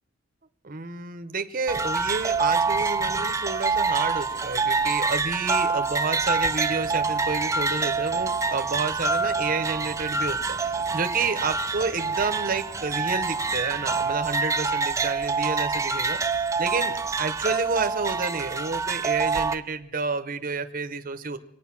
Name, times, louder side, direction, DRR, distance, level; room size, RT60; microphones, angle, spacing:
voice 1, 0.6-21.4, right 4 dB, 45° right, 9 dB, 0.9 m, -30 dB
sound 1, 1.7-19.5, right 4 dB, 15° right, 0.5 m, -26 dB
sound 2, 6.3-14.1, equal, 30° left, 4.5 m, -48 dB
23.5 x 9.2 x 6.0 m, 0.82 s
head